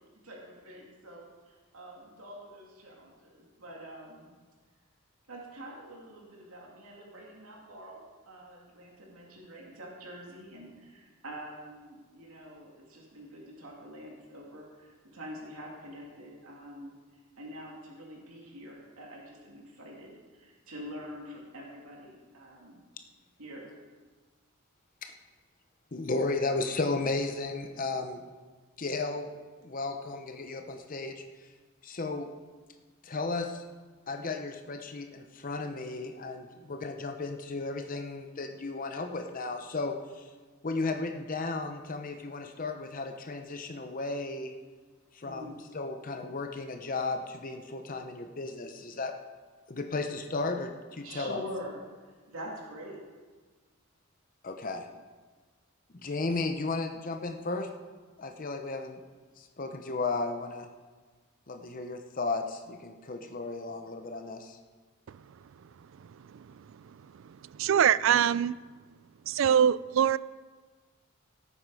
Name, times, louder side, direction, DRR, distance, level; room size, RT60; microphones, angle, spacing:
voice 1, 0.0-4.3 5.3-16.9 17.4-22.8 23.4-23.7 36.7-36.8 45.2-45.6 51.0-53.0, equal, 85° right, -2 dB, 2.4 m, -46 dB
voice 2, 25.9-28.2 28.8-29.3 29.6-31.2 31.8-32.3 33.0-33.6 34.1-40.3 40.6-44.5 45.1-49.1 49.7-51.4 54.4-54.9 55.9-57.7 58.2-59.0 59.4-60.7 61.5-64.6, left 3 dB, 40° left, 6 dB, 0.7 m, -34 dB
voice 3, 67.5-68.6 69.3-70.2, right 8 dB, 65° right, 19 dB, 0.3 m, -23 dB
16.5 x 9.0 x 4.8 m, 1.4 s
head